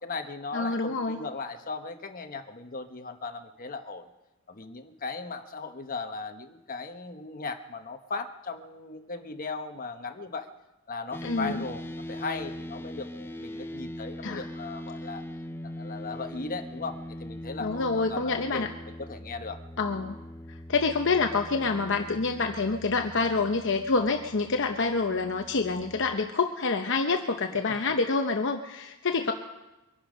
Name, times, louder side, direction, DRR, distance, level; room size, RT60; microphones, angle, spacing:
voice 1, 0.0-4.1 4.5-10.5 10.9-11.8 12.1-15.2 15.8-19.6, left 4 dB, 40° left, 6 dB, 1.2 m, -37 dB
voice 2, 0.5-1.2 11.2-11.6 14.2-14.5 17.6-18.7 19.8-20.2 20.7-29.3, left 4 dB, 60° left, 5 dB, 0.8 m, -27 dB
sound 1, 11.1-26.2, left 1 dB, 10° left, 0.6 m, -41 dB
23.0 x 11.5 x 5.2 m, 1.0 s
head